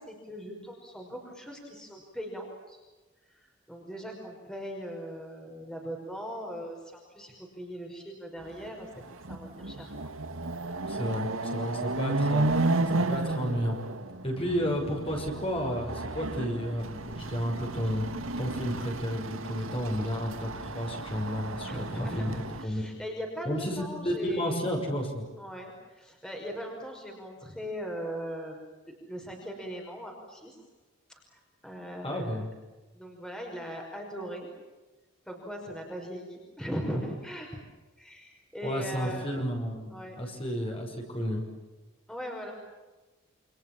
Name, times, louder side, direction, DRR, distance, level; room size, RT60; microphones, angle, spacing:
voice 1, 0.0-2.8 3.2-9.9 21.7-24.7 25.4-30.6 31.1-32.4 32.9-34.5 35.2-37.5 38.0-39.3 39.9-40.2 42.1-42.5, equal, 5° left, 1 dB, 5.4 m, -39 dB
Chatter / Car passing by / Motorcycle, 8.6-8.7 9.1-22.6, right 2 dB, 80° right, 2.3 m, -33 dB
voice 2, 10.9-12.7 12.9-13.8 14.2-18.1 18.4-22.3 22.6-22.8 23.4-25.2 32.0-32.5 38.6-41.4, equal, 25° left, 1 dB, 6.3 m, -32 dB
29.0 x 27.5 x 7.3 m, 1.2 s
head